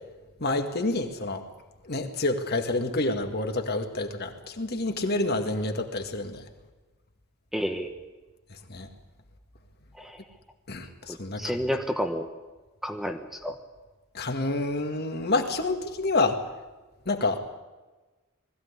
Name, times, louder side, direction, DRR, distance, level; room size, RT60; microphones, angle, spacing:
voice 1, 0.4-1.4 1.9-6.4 8.7-8.9 10.7-11.4 14.1-16.4 17.1-17.4, left 2 dB, 50° left, 5 dB, 2.0 m, -28 dB
voice 2, 7.5-8.0 10.0-10.2 11.1-12.3 12.8-13.6, equal, ahead, 5 dB, 1.2 m, -30 dB
20.5 x 15.5 x 9.8 m, 1.2 s
head